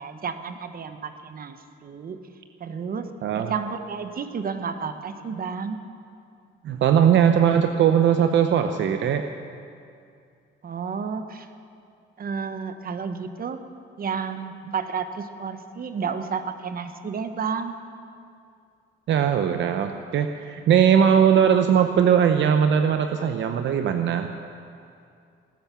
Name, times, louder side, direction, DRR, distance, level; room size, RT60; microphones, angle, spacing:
voice 1, 0.0-1.6 1.8-2.2 2.6-3.1 3.4-5.8 10.6-11.5 12.2-13.6 14.0-17.8, right 6 dB, 45° right, 9 dB, 1.2 m, -31 dB
voice 2, 3.2-3.5 6.6-9.3 19.1-24.3, right 8 dB, 70° right, 7 dB, 0.7 m, -20 dB
18.5 x 10.5 x 7.0 m, 2.4 s
cardioid pair, 90°, 20 cm